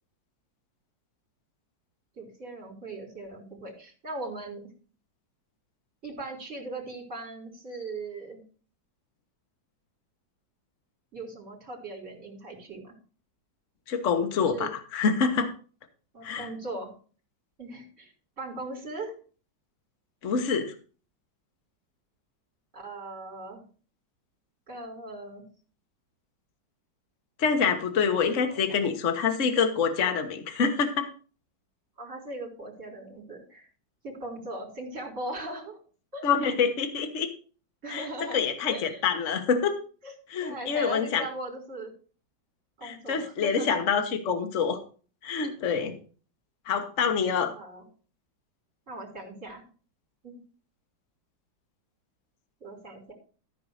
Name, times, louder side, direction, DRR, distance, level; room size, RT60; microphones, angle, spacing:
voice 1, 2.2-4.7 6.0-8.5 11.1-12.9 14.4-14.7 16.1-16.9 17.6-19.2 22.7-23.6 24.7-25.4 28.4-28.8 32.0-33.7 34.0-35.8 36.1-36.2 37.8-39.0 40.0-40.1 40.4-41.9 42.8-43.7 47.4-47.8 48.9-49.6 50.2-50.4 52.6-53.1, right 2 dB, 40° right, -1 dB, 4.3 m, -39 dB
voice 2, 13.9-15.5 16.2-16.5 20.2-20.7 27.4-31.1 36.2-37.3 37.9-38.0 38.3-39.8 40.3-41.3 42.8-44.8 45.2-45.9 46.7-47.5, left 6 dB, 45° left, 5 dB, 1.5 m, -26 dB
14.0 x 4.7 x 6.4 m, 0.39 s
omnidirectional pair, 2.0 m